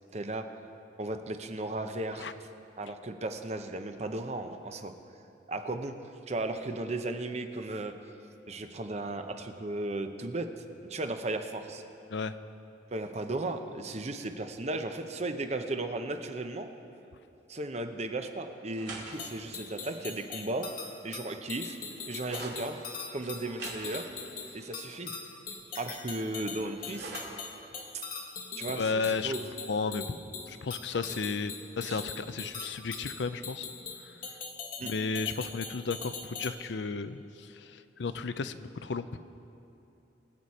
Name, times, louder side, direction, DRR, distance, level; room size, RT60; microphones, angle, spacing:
voice 1, 0.1-0.5 1.0-2.3 2.8-4.9 5.5-6.0 6.3-7.9 8.5-10.5 10.9-11.8 12.9-16.7 17.5-20.7 21.0-21.8 22.1-22.8 23.1-24.1 24.5-25.1 25.8-27.1 27.9-28.0 28.6-28.9 29.2-29.4 31.9-32.0 34.8-34.9, right 2 dB, 40° right, 7 dB, 0.8 m, -35 dB
sound 1, 18.6-22.6 23.2-25.6 25.9-27.4, right 2 dB, 80° right, 2.8 m, -47 dB
sound 2, 19.1-36.5, left 5 dB, 50° left, 1.4 m, -41 dB
voice 2, 28.7-29.3 29.7-30.2 30.5-33.7 34.8-39.2, left 4 dB, 85° left, 12 dB, 0.5 m, -33 dB
23.5 x 8.1 x 4.3 m, 2.8 s
head